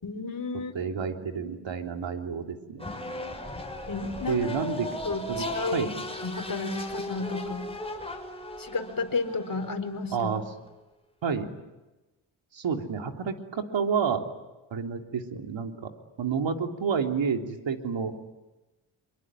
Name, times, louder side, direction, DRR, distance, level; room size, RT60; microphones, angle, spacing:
voice 1, 0.0-0.9 3.9-4.4 5.0-5.9 6.2-7.7 8.6-10.3, left 3 dB, 45° left, 7 dB, 4.3 m, -32 dB
voice 2, 0.7-2.9 4.3-5.0 5.3-5.9 10.1-10.4 11.2-11.5 12.5-14.3 14.7-15.9 16.2-18.2, right 6 dB, 70° right, 4 dB, 3.3 m, -29 dB
sound 1, 2.8-10.7, left 1 dB, 10° left, 6.4 m, -37 dB
26.0 x 24.0 x 9.2 m, 1.1 s
cardioid pair, 65°, 47 cm